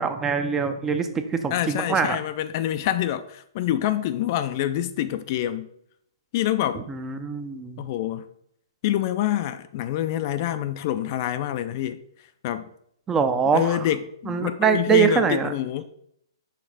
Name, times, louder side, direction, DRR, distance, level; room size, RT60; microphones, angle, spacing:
voice 1, 0.0-2.2 6.8-7.8 13.1-13.8 14.3-15.5, right 6 dB, 15° right, 0.5 m, -23 dB
voice 2, 1.5-5.7 6.3-6.8 7.8-8.3 8.8-12.0 12.4-12.7 13.5-15.8, left 12 dB, 40° left, 0.3 m, -26 dB
5.8 x 3.5 x 4.7 m
hypercardioid pair, 135°, 2 cm